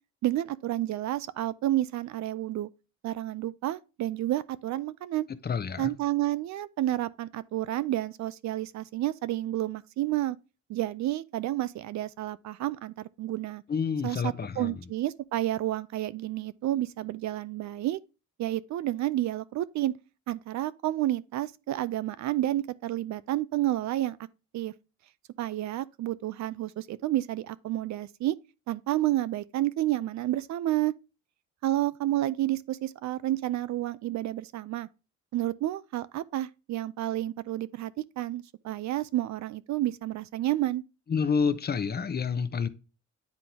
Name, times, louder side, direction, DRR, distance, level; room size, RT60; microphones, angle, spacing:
voice 1, 0.2-2.7 3.0-5.3 5.8-10.4 10.7-13.6 14.0-18.0 18.4-19.9 20.3-24.2 24.5-24.7 25.4-28.3 28.7-30.9 31.6-34.9 35.3-40.8, right 14 dB, 65° right, 0.5 m, -30 dB
voice 2, 5.4-5.9 13.7-14.8 41.1-42.7, left 6 dB, 35° left, 0.7 m, -28 dB
9.7 x 3.8 x 2.8 m
cardioid pair, 90°, 30 cm